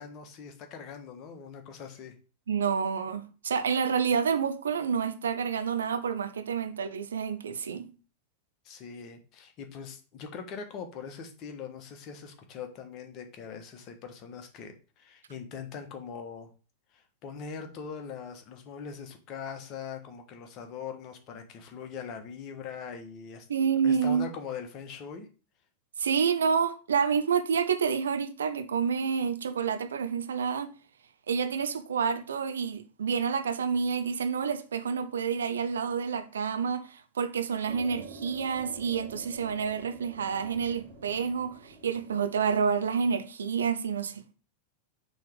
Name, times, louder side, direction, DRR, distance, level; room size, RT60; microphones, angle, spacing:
voice 1, 0.0-2.1 8.6-16.5 16.9-23.5 23.8-25.3, left 6 dB, 40° left, 1.3 m, -41 dB
voice 2, 2.5-7.9 23.5-24.3 26.0-30.7 31.3-44.3, right 6 dB, 65° right, 0.6 m, -28 dB
sound 1, 37.7-42.8, right 4 dB, 15° right, 2.2 m, -48 dB
6.2 x 3.3 x 5.1 m
figure-of-eight pair, 90°, 0 cm